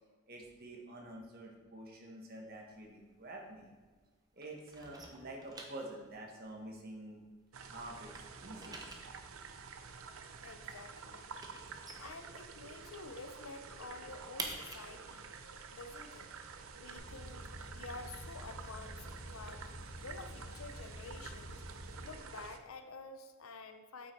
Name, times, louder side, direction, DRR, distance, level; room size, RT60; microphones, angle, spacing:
voice 1, 0.3-3.7 4.3-7.2 7.6-8.8, right 1 dB, 45° right, 0 dB, 1.3 m, -48 dB
sound 1, 2.6-4.1 4.4-7.6 7.9-12.9 13.2-13.3 13.6-17.3, right 3 dB, 20° right, 0.7 m, -49 dB
sound 2, 7.5-22.6, right 5 dB, 70° right, 0.6 m, -50 dB
voice 2, 10.4-11.3 12.0-16.3 16.7-19.6 20.0-21.6 22.0-24.1, left 3 dB, 75° left, 8 dB, 0.7 m, -50 dB
sound 3, 16.9-22.1, equal, 35° left, 1.4 m, -49 dB
8.1 x 5.6 x 4.5 m, 1.3 s
head